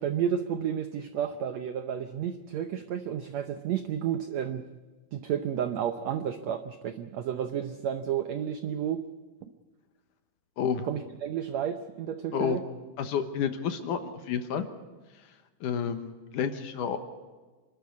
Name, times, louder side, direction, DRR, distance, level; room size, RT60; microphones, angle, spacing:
voice 1, 0.0-4.6 5.1-9.1 9.4-9.5 10.9-12.6, right 9 dB, 80° right, 9 dB, 1.5 m, -31 dB
voice 2, 10.6-10.9 12.3-12.6 13.0-14.6 15.6-17.0, left 7 dB, 65° left, 8 dB, 2.5 m, -30 dB
26.5 x 12.5 x 9.5 m, 1.3 s
omnidirectional pair, 4.2 m